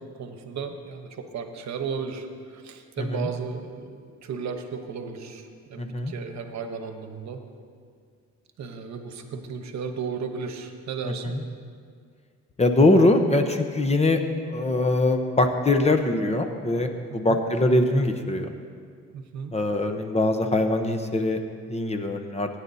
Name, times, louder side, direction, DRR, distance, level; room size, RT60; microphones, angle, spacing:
voice 1, 0.2-7.4 8.6-11.4 17.3-17.4 19.1-19.5, right 5 dB, 65° right, 6 dB, 1.1 m, -35 dB
voice 2, 3.0-3.3 5.8-6.1 11.1-11.4 12.6-14.2 14.5-18.5 19.5-21.4 21.7-22.5, left 2 dB, 20° left, 6 dB, 0.9 m, -22 dB
19.0 x 9.8 x 2.8 m, 2.1 s
cardioid pair, 90°, 30 cm